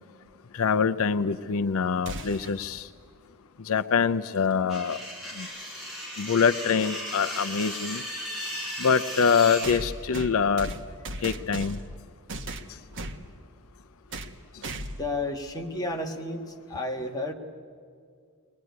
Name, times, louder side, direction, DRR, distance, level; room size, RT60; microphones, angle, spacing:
voice 1, 0.5-2.9 3.7-5.0 5.4-5.5 6.2-8.0 8.8-10.7 11.2-11.8, left 6 dB, 70° left, 11 dB, 0.5 m, -24 dB
sound 1, 2.1-2.6 4.7-4.8 5.9-6.0 9.6-11.9 12.3-13.2 14.1-14.4 14.6-15.1, right 1 dB, 60° right, 1.3 m, -36 dB
sound 2, 4.7-9.7, equal, ahead, 6.3 m, -36 dB
voice 2, 14.9-17.3, left 2 dB, 15° left, 1 dB, 1.8 m, -32 dB
22.5 x 19.5 x 9.6 m, 2.2 s
head